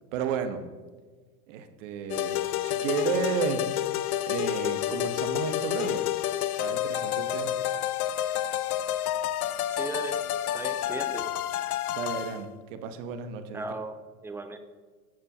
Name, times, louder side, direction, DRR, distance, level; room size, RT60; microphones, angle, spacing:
voice 1, 0.1-0.6 1.5-3.7 4.3-6.0 6.6-7.5 11.9-13.6, right 7 dB, 55° right, 9 dB, 1.2 m, -32 dB
sound 1, 2.1-12.4, left 12 dB, 70° left, 0.7 m, -29 dB
voice 2, 9.7-10.2 10.5-11.3 13.5-13.9 14.2-14.6, right 2 dB, 5° right, 8 dB, 0.4 m, -36 dB
13.5 x 6.7 x 2.9 m, 1.4 s
hypercardioid pair, 100°, 46 cm